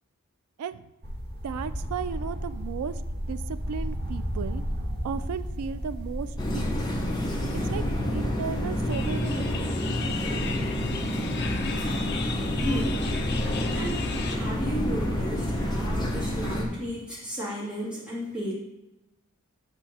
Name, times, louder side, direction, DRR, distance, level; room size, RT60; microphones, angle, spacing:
sound 1, 1.0-15.9, equal, 45° right, 1.1 m, -35 dB
voice 1, 1.4-3.0 3.3-4.6 5.0-6.8 7.7-7.8 8.1-9.7, right 6 dB, 90° right, 14 dB, 0.3 m, -35 dB
sound 2, 6.4-16.7, left 1 dB, 20° left, 0.8 m, -29 dB
sound 3, 8.9-14.4, left 6 dB, 50° left, 0.5 m, -37 dB
voice 2, 12.6-13.0 13.5-18.5, equal, 5° right, -9 dB, 2.2 m, -34 dB
8.4 x 3.5 x 4.2 m, 0.98 s
head